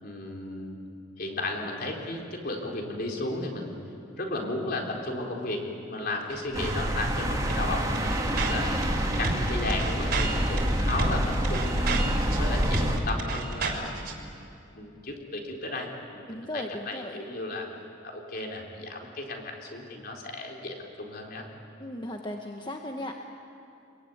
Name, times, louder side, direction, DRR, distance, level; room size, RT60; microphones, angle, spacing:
voice 1, 0.0-0.8 1.2-3.8 4.2-8.7 9.2-12.0 12.4-14.1 14.8-17.7 18.0-21.5, left 2 dB, 50° left, 0 dB, 4.1 m, -34 dB
sound 1, 6.3-6.8 7.1-7.2 7.4-14.1, right 3 dB, 55° right, 3.6 m, -33 dB
sound 2, 6.5-13.0, equal, 20° right, 2.8 m, -27 dB
voice 2, 16.3-17.2 21.8-23.1, left 1 dB, 25° left, 2 dB, 1.3 m, -36 dB
27.0 x 22.5 x 9.4 m, 2.6 s
head